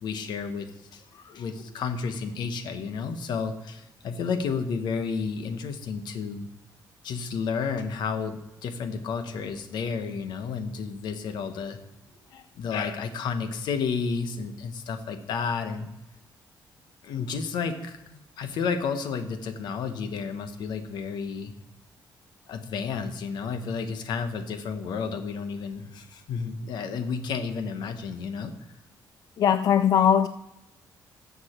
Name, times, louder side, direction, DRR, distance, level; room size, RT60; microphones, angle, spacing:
voice 1, 0.0-6.5 7.0-11.8 12.3-15.9 17.0-21.5 22.5-28.5, left 5 dB, 80° left, 9 dB, 1.0 m, -31 dB
voice 2, 29.4-30.3, left 8 dB, 55° left, 12 dB, 0.3 m, -20 dB
13.0 x 7.1 x 4.4 m, 0.94 s
cardioid pair, 130°, 7 cm